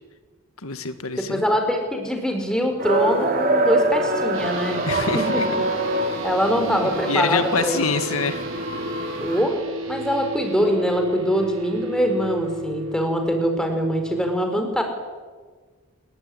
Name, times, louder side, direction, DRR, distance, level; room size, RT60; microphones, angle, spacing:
voice 1, 0.6-1.4 4.9-5.4 6.7-8.4, left 4 dB, 90° left, 9 dB, 1.9 m, -25 dB
voice 2, 1.2-4.9 5.1-5.4 6.2-7.8 9.2-9.5 9.9-14.8, equal, 5° left, 4 dB, 4.6 m, -23 dB
sound 1, 2.8-9.4, right 2 dB, 40° right, 3.5 m, -25 dB
sound 2, 4.3-14.3, right 1 dB, 75° right, 6.4 m, -33 dB
26.5 x 21.0 x 9.9 m, 1.5 s
head